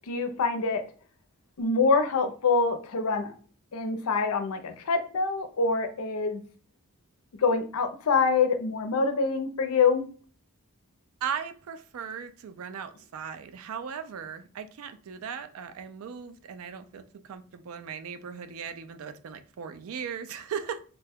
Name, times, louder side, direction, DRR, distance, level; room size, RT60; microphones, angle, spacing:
voice 1, 0.1-0.8 1.6-3.3 3.7-6.4 7.4-10.0, left 4 dB, 75° left, 7 dB, 0.5 m, -25 dB
voice 2, 11.2-20.8, right 7 dB, 65° right, 11 dB, 0.3 m, -38 dB
2.8 x 2.2 x 3.4 m, 0.41 s
head